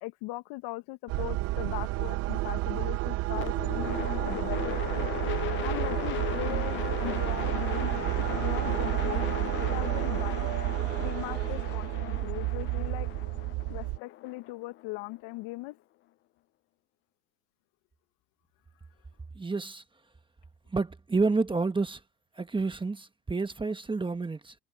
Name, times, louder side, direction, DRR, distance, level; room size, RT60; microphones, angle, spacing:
voice 1, 0.0-4.8 5.6-7.9 8.3-10.5 11.0-13.1 13.7-15.8, left 21 dB, 55° left, 1.5 m, -39 dB
sound 1, 1.1-14.0, right 19 dB, 35° right, 0.4 m, -30 dB
sound 2, 3.3-15.4, left 16 dB, 25° left, 0.4 m, -37 dB
voice 2, 19.3-19.8 20.7-22.0 22.4-24.5, right 3 dB, 10° right, 1.2 m, -29 dB
supercardioid pair, 120°, 48 cm